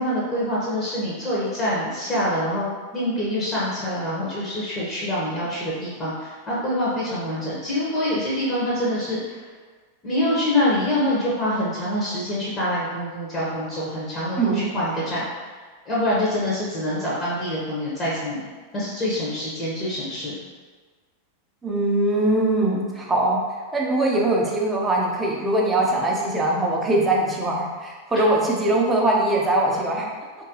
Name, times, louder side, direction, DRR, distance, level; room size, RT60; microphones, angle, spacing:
voice 1, 0.0-9.4 10.0-15.5 15.9-20.3, left 1 dB, 25° left, -7 dB, 0.9 m, -25 dB
voice 2, 21.6-23.4 23.7-30.1, right 1 dB, 15° right, -2 dB, 0.6 m, -21 dB
3.6 x 2.6 x 2.8 m, 1.4 s
figure-of-eight pair, 90°, 0 cm